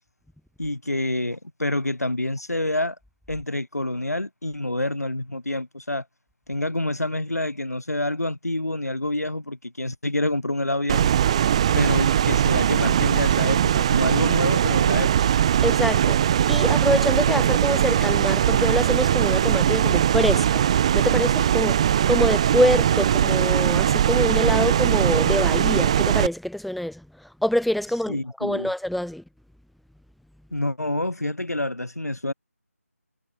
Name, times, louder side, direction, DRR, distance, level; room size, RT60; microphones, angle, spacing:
voice 1, 0.6-3.0 3.3-6.0 6.5-11.1 11.7-15.1 28.1-28.7 30.5-32.3, left 1 dB, 90° left, 6.7 m, -27 dB
sound 1, 10.9-26.3, right 10 dB, 25° right, 2.3 m, -20 dB
voice 2, 15.6-16.2 16.5-20.7 20.9-27.0 27.4-29.2, left 1 dB, ahead, 1.3 m, -25 dB
figure-of-eight pair, 165°, 8 cm